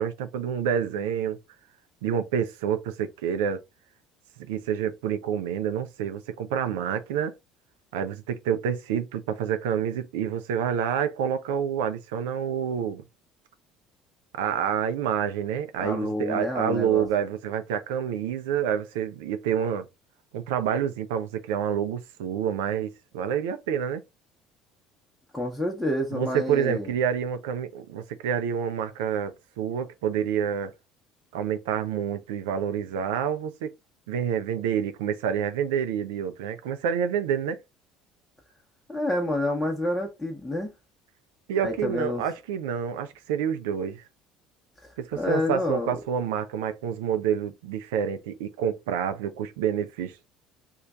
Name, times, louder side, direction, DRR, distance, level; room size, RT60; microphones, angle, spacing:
voice 1, 0.0-1.4 2.0-3.6 4.5-7.3 7.9-13.0 14.3-19.9 20.3-24.0 26.1-30.7 31.3-33.7 34.1-37.6 41.5-44.0 45.0-50.2, right 8 dB, 65° right, 0.5 m, -28 dB
voice 2, 15.8-17.1 25.3-26.9 38.9-40.7 41.6-42.2 44.8-46.0, left 1 dB, 5° left, 0.9 m, -28 dB
3.1 x 2.3 x 3.6 m
figure-of-eight pair, 60°, 0 cm